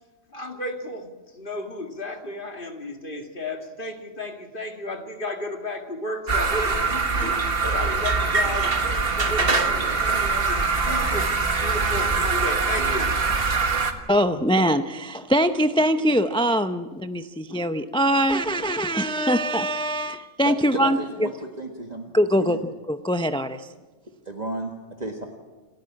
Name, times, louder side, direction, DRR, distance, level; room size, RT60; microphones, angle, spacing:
voice 1, 0.3-13.3, left 1 dB, 45° left, 5 dB, 2.2 m, -33 dB
sound 1, 6.3-13.9, right 4 dB, 50° right, 1.8 m, -23 dB
voice 2, 14.1-21.3 22.1-22.6 22.9-23.7, equal, 5° left, 9 dB, 0.5 m, -22 dB
voice 3, 20.4-22.1 22.4-22.6 24.2-25.3, right 1 dB, 35° right, 3 dB, 1.7 m, -33 dB
28.5 x 13.0 x 8.8 m, 1.3 s
omnidirectional pair, 1.3 m